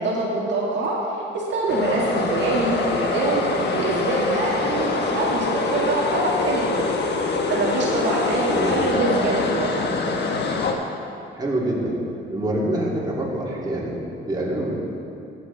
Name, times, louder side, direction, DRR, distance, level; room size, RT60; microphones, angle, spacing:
voice 1, 0.0-3.4 3.7-7.0 7.5-9.8, right 2 dB, 65° right, -4 dB, 2.0 m, -24 dB
sound 1, 1.7-10.7, left 4 dB, 60° left, 1.2 m, -24 dB
voice 2, 8.5-8.8 11.3-12.0 12.3-14.8, right 1 dB, 20° right, -5 dB, 2.9 m, -26 dB
14.5 x 8.1 x 4.1 m, 2.7 s
cardioid pair, 90°, 20 cm